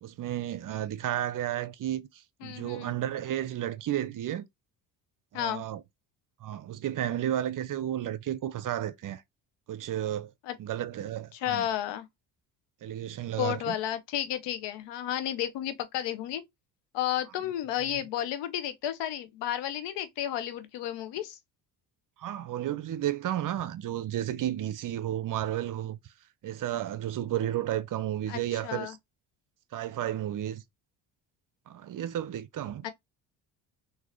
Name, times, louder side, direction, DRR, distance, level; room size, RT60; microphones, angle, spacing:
voice 1, 0.0-4.4 5.3-5.8 6.4-9.2 9.7-10.3 10.6-11.7 12.8-13.8 22.2-26.0 26.4-29.0 29.7-30.6 31.7-32.8, right 11 dB, 50° right, 0.6 m, -32 dB
voice 2, 2.4-3.0 5.3-5.6 10.4-10.5 11.3-12.1 13.4-16.4 16.9-21.4 28.3-28.9 32.8-32.9, left 11 dB, 80° left, 0.8 m, -32 dB
3.8 x 2.8 x 3.1 m
supercardioid pair, 80°, 42 cm